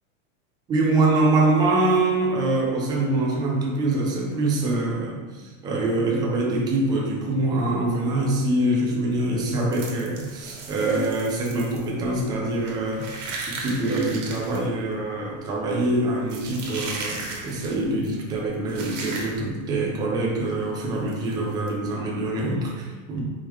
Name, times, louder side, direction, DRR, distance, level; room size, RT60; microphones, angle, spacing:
voice 1, 0.7-23.2, right 2 dB, 10° right, -2 dB, 0.4 m, -24 dB
sound 1, 9.2-19.7 19.9-20.2 20.5-20.6 21.1-21.7, right 3 dB, 70° right, 1.2 m, -37 dB
4.6 x 3.6 x 3.0 m, 1.3 s
supercardioid pair, 155°, 38 cm